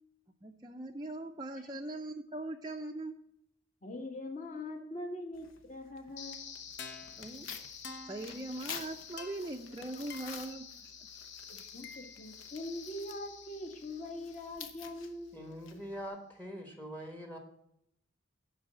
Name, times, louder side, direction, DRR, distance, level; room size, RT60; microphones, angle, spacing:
voice 1, 0.4-3.1 7.2-7.5 8.1-10.9, right 2 dB, 20° right, 1 dB, 0.5 m, -41 dB
voice 2, 3.8-6.4 11.5-15.4, left 1 dB, 35° left, 3 dB, 1.5 m, -42 dB
Tearing, 5.3-16.1, left 6 dB, 85° left, 1.0 m, -50 dB
sound 1, 6.2-15.2, left 6 dB, 60° left, 1.0 m, -48 dB
voice 3, 15.3-17.4, equal, 10° left, 4 dB, 1.1 m, -43 dB
11.5 x 4.0 x 7.5 m, 0.75 s
head